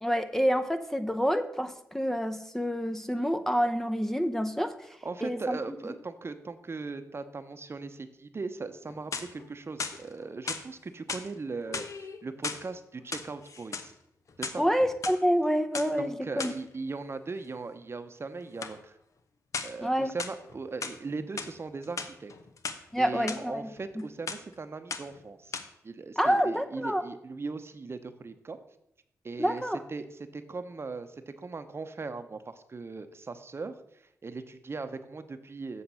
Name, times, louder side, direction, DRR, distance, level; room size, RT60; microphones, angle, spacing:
voice 1, 0.0-4.7 5.2-5.6 14.6-16.5 19.8-20.1 22.9-23.7 26.2-27.0 29.4-29.8, equal, 5° left, 8 dB, 0.7 m, -27 dB
voice 2, 5.0-13.9 14.4-14.7 16.0-18.9 19.6-22.3 23.0-25.6 25.8-28.6 29.2-29.6 29.9-33.8 34.2-35.8, right 4 dB, 40° right, 9 dB, 0.9 m, -39 dB
sound 1, 8.8-9.5 9.8-10.7 11.1-11.3 11.7-12.7 13.0-13.9 14.3-15.2 15.7-15.9 16.4-16.6 18.6-18.8 19.5-19.8 20.2-21.0 21.4-21.5 21.8-22.8 23.3-23.4 23.8-24.0 24.3-24.5 24.9-25.2 25.5-25.6, left 5 dB, 60° left, 0.9 m, -36 dB
7.9 x 5.8 x 5.6 m, 0.78 s
supercardioid pair, 50°, 6 cm